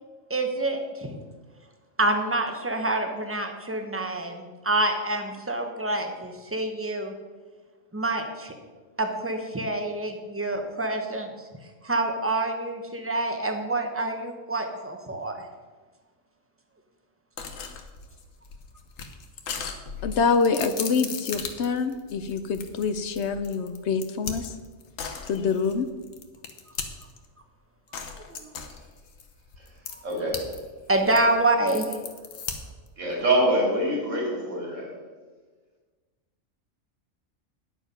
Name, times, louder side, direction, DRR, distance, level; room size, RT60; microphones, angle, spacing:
voice 1, 0.3-1.2 2.0-7.1 7.9-8.6 9.0-11.5 11.8-15.5 28.1-28.5 29.9-30.0 30.9-32.0, right 2 dB, 10° right, 4 dB, 0.8 m, -27 dB
sound 1, 17.4-27.3 27.9-30.6 30.9-32.9, left 6 dB, 85° left, 1.3 m, -37 dB
voice 2, 20.0-24.6 25.2-25.9, left 5 dB, 65° left, 10 dB, 0.8 m, -26 dB
voice 3, 30.0-30.4 33.0-34.9, right 1 dB, 70° right, -2 dB, 3.0 m, -25 dB
10.0 x 7.1 x 5.4 m, 1.4 s
omnidirectional pair, 1.3 m